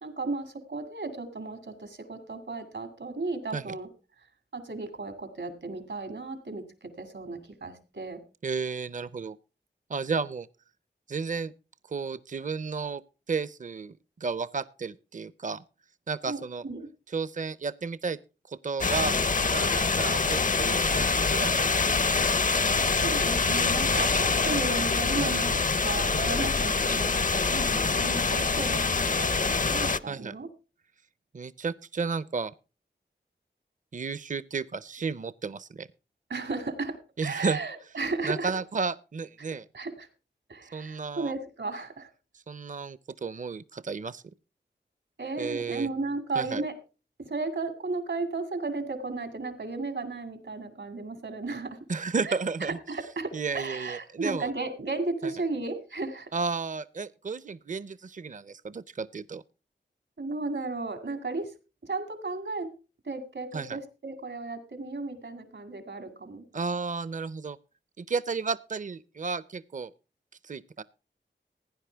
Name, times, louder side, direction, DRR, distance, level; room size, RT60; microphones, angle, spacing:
voice 1, 0.0-3.9 4.5-8.2 16.3-16.9 23.0-30.5 36.3-38.5 39.7-40.1 40.5-42.1 45.2-46.8 47.2-51.8 52.2-56.3 60.2-61.5 61.8-62.7 63.0-66.5, right 3 dB, 80° right, 2.2 m, -34 dB
voice 2, 8.4-9.4 9.9-10.5 11.1-11.5 11.9-13.0 13.3-13.9 14.2-15.6 16.1-16.6 17.1-18.2 18.5-21.7 22.0-22.2 25.2-25.4 30.1-30.4 31.3-32.5 33.9-35.9 37.2-37.6 38.2-39.6 40.7-41.3 42.5-44.2 45.4-45.9 46.4-46.6 51.9-52.8 53.3-54.5 55.2-55.3 56.3-59.4 63.5-63.8 66.5-67.6 68.0-69.9 70.4-70.8, right 4 dB, 40° right, 0.5 m, -33 dB
sound 1, 18.8-30.0, left 4 dB, 45° left, 0.5 m, -25 dB
16.0 x 9.9 x 3.4 m
wide cardioid pair, 45°, 19 cm